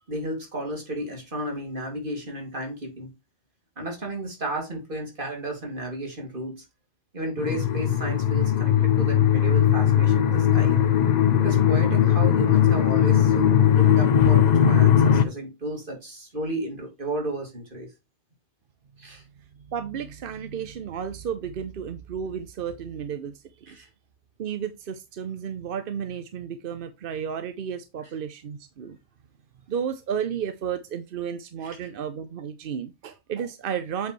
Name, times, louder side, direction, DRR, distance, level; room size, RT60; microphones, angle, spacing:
voice 1, 0.1-3.1 3.8-6.6 7.1-10.8 11.4-17.9 19.0-19.2 23.7-23.9 31.6-31.8, right 1 dB, 35° right, 2.6 m, -33 dB
sound 1, 7.4-15.2, left 9 dB, 60° left, 0.4 m, -19 dB
voice 2, 19.7-23.8 24.4-29.0 29.7-34.1, right 7 dB, 55° right, 0.7 m, -33 dB
8.2 x 4.8 x 3.1 m
omnidirectional pair, 1.5 m